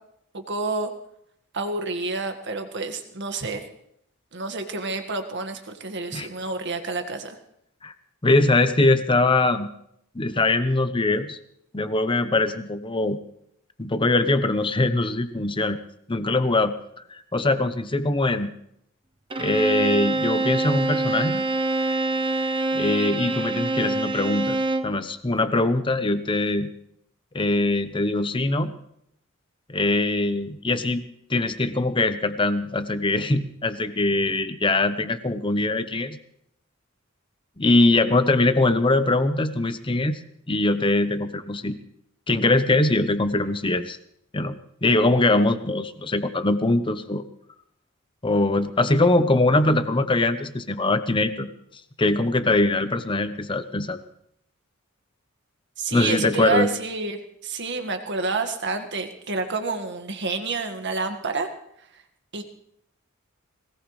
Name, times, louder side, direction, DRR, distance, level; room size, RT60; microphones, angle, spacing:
voice 1, 0.3-0.9 1.5-3.6 4.3-7.4 55.8-61.5 61.9-62.0 62.3-62.4, right 3 dB, 55° right, 6 dB, 1.8 m, -29 dB
voice 2, 8.2-9.7 10.1-11.4 11.7-13.2 13.8-15.8 16.1-16.7 17.1-18.5 19.4-21.4 22.7-24.6 24.8-26.7 27.3-28.7 29.7-31.0 31.3-36.2 37.6-40.2 40.5-41.8 42.3-44.0 44.3-44.6 44.8-47.2 48.2-51.5 52.0-54.0 55.9-56.7, left 2 dB, 25° left, 10 dB, 0.9 m, -22 dB
Bowed string instrument, 19.3-25.0, right 2 dB, 25° right, 0.8 m, -25 dB
21.0 x 19.0 x 3.3 m, 0.74 s
head